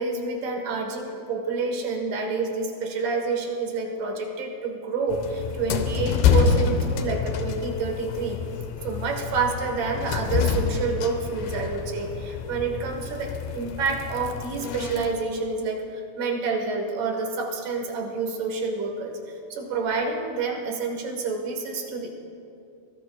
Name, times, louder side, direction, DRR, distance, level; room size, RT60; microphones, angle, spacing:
voice 1, 0.0-8.4 8.8-22.1, right 4 dB, 65° right, 2 dB, 2.6 m, -28 dB
sound 1, 5.1-15.1, left 6 dB, 85° left, 2.8 m, -27 dB
24.5 x 19.0 x 2.3 m, 2.7 s
omnidirectional pair, 4.4 m